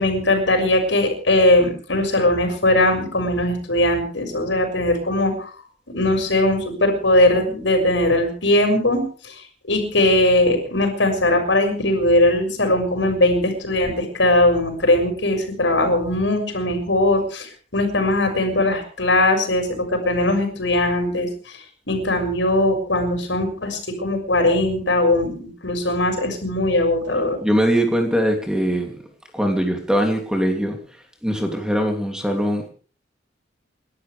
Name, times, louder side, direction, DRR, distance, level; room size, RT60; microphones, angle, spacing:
voice 1, 0.0-5.5 5.9-9.3 9.7-21.3 21.9-27.4, left 1 dB, 75° left, 4 dB, 6.5 m, -20 dB
voice 2, 27.4-29.0 29.3-30.8 31.2-32.7, equal, 5° right, 3 dB, 3.0 m, -21 dB
28.5 x 12.5 x 3.5 m, 0.39 s
head